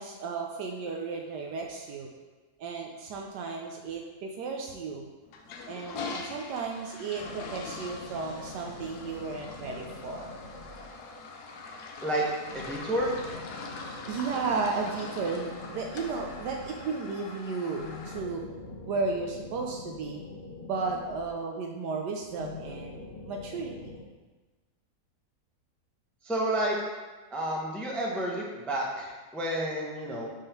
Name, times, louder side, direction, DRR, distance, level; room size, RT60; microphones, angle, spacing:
voice 1, 0.0-2.1 2.6-5.1 5.7-10.3 14.1-18.4 18.9-20.2 20.6-23.9, right 4 dB, 80° right, 1 dB, 1.2 m, -34 dB
Toilet flush, 5.3-18.2, left 4 dB, 75° left, 1.2 m, -42 dB
sound 1, 7.2-11.4 12.5-17.1 17.7-21.7 22.3-24.0, left 2 dB, 50° left, 0.8 m, -44 dB
voice 2, 12.5-13.2 26.2-26.8 27.3-30.3, right 1 dB, ahead, -2 dB, 0.3 m, -30 dB
5.3 x 3.6 x 5.5 m, 1.3 s
omnidirectional pair, 1.8 m